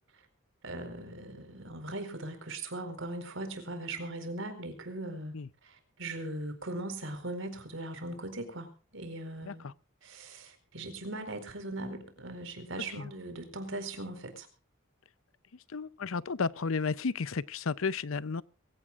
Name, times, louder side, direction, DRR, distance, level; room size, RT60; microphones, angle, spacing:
voice 1, 0.6-9.7 10.0-14.5, right 2 dB, 60° right, 4.4 m, -39 dB
voice 2, 9.4-9.7 13.0-13.1 15.7-18.4, left 4 dB, 70° left, 0.6 m, -33 dB
23.5 x 16.0 x 2.5 m
head